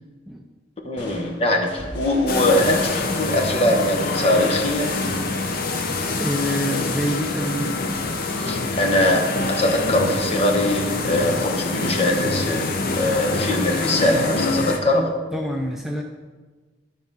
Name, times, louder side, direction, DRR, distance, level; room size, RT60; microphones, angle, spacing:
voice 1, 0.8-4.9 8.4-15.1, left 1 dB, 35° left, 1 dB, 1.1 m, -22 dB
sound 1, 1.0-4.6, equal, 75° left, 1.5 m, -40 dB
sound 2, 2.3-14.8, left 3 dB, 55° left, 0.8 m, -25 dB
voice 2, 6.2-7.7 15.3-16.0, equal, ahead, 0 dB, 0.4 m, -26 dB
10.5 x 3.9 x 5.5 m, 1.3 s
head